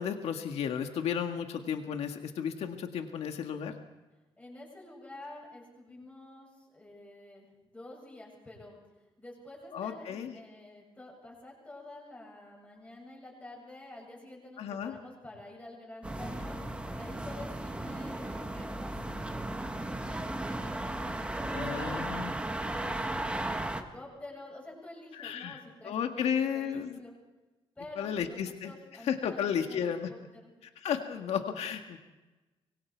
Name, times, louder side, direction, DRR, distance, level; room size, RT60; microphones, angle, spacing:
voice 1, 0.0-3.7 9.7-10.4 14.6-15.0 21.5-22.3 25.1-27.0 28.0-28.7 29.1-30.1 30.8-32.0, left 8 dB, 85° left, 5 dB, 1.8 m, -33 dB
voice 2, 4.4-8.8 9.2-16.6 16.9-20.2 20.5-22.0 22.5-27.2 27.8-30.5, left 2 dB, 15° left, -2 dB, 7.8 m, -48 dB
sound 1, 16.0-23.8, right 1 dB, 10° right, 1.4 m, -35 dB
24.5 x 24.0 x 4.7 m, 1.1 s
wide cardioid pair, 170°, 10 cm